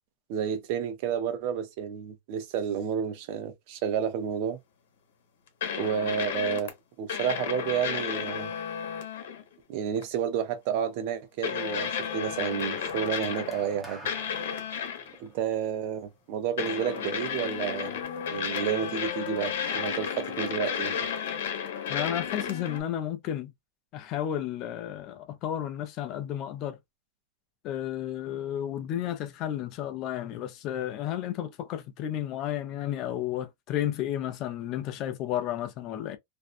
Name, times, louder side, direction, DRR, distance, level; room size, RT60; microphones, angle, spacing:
voice 1, 0.3-4.6 5.8-6.7 7.0-8.5 9.7-14.0 15.2-18.0 18.3-20.9, right 8 dB, 50° right, 0.6 m, -30 dB
sound 1, 5.6-6.7 7.1-9.4 10.0-10.1 11.4-13.7 14.1-15.2 16.6-22.8, left 8 dB, 80° left, 0.9 m, -32 dB
sound 2, 12.3-16.7 17.7-17.9, right 1 dB, 10° right, 0.7 m, -48 dB
voice 2, 21.9-23.5 23.9-26.8 27.6-36.2, left 11 dB, 35° left, 0.5 m, -32 dB
2.6 x 2.2 x 2.4 m
supercardioid pair, 160°, 0 cm